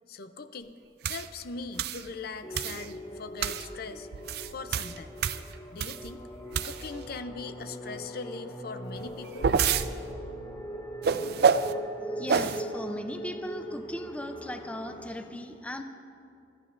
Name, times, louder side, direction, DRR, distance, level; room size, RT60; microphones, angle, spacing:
voice 1, 0.1-0.8 1.1-4.1 4.5-5.1 5.7-6.2 6.6-9.5, left 4 dB, 55° left, 10 dB, 0.6 m, -40 dB
sound 1, 1.0-1.3 1.8-2.0 2.5-2.9 3.4-3.7 4.1-6.1 6.5-7.0 9.0-9.9 11.0-11.7 12.3-12.6, right 6 dB, 60° right, 0.4 m, -27 dB
sound 2, 2.4-15.1, equal, 25° left, 2.5 m, -40 dB
voice 2, 12.2-15.8, left 1 dB, 5° left, 6 dB, 0.5 m, -37 dB
24.0 x 13.5 x 2.5 m, 2.5 s
head